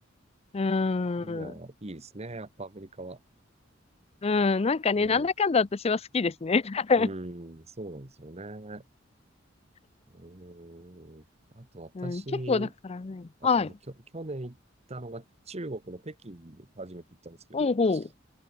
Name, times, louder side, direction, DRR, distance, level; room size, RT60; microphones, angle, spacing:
voice 1, 0.5-1.5 4.2-7.1 12.0-12.2 12.5-13.7 17.5-18.1, left 4 dB, 30° left, 0.5 m, -26 dB
voice 2, 1.2-3.2 4.9-5.3 7.0-8.8 10.1-11.3 11.5-12.7 13.4-14.6 14.9-18.0, right 2 dB, 35° right, 1.5 m, -41 dB
open air
head